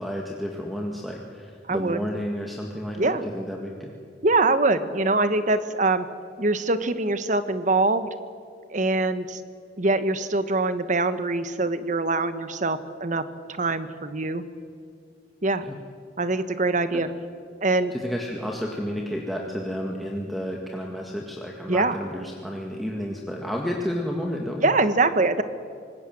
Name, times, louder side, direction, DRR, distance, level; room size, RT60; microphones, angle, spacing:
voice 1, 0.0-3.9 15.6-15.8 16.9-17.0 17.9-24.7, equal, ahead, -1 dB, 1.8 m, -31 dB
voice 2, 1.7-2.0 3.0-3.2 4.2-6.0 6.4-8.1 8.7-9.4 9.8-13.2 13.6-14.4 15.4-15.6 16.2-17.1 17.6-17.9 21.7-21.9 24.6-25.4, right 2 dB, 45° right, 11 dB, 1.3 m, -23 dB
25.5 x 19.5 x 7.7 m, 2.3 s
head